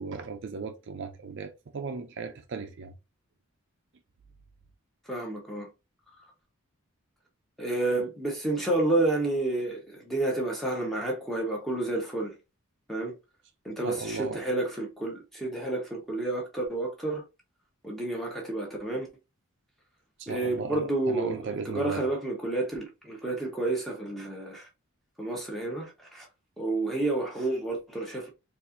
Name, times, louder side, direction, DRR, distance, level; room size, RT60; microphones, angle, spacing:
voice 1, 0.0-2.9 13.8-14.5 20.2-22.1, right 4 dB, 55° right, 0.4 m, -36 dB
voice 2, 5.1-5.7 7.6-12.3 12.9-13.2 13.6-17.2 17.8-19.1 20.3-21.4 21.7-24.7 25.2-26.3 26.6-28.3, right 2 dB, ahead, 0.9 m, -30 dB
4.2 x 2.5 x 2.5 m
head